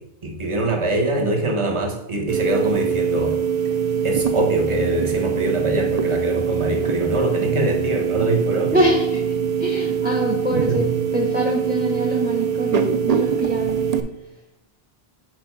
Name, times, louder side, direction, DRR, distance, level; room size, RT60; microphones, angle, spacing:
voice 1, 0.2-3.4 4.0-8.8 10.5-10.9, right 1 dB, 30° right, 1 dB, 1.2 m, -23 dB
sound 1, 2.3-14.0, right 7 dB, 45° right, 0.5 m, -23 dB
voice 2, 8.7-9.2 9.6-13.8, right 1 dB, 10° right, -1 dB, 0.8 m, -24 dB
7.8 x 4.7 x 4.5 m, 0.87 s
omnidirectional pair, 1.1 m